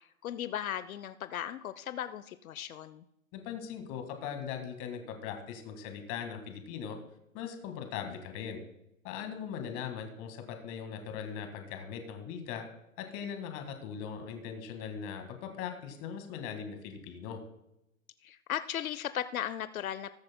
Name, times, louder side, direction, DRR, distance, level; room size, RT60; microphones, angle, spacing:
voice 1, 0.2-3.0 18.2-20.1, left 10 dB, 70° left, 13 dB, 0.7 m, -37 dB
voice 2, 3.3-7.0 7.3-8.6 9.0-12.7 13.0-17.4, left 7 dB, 30° left, 6 dB, 1.8 m, -40 dB
20.0 x 7.6 x 2.2 m, 0.85 s
hypercardioid pair, 130°, 43 cm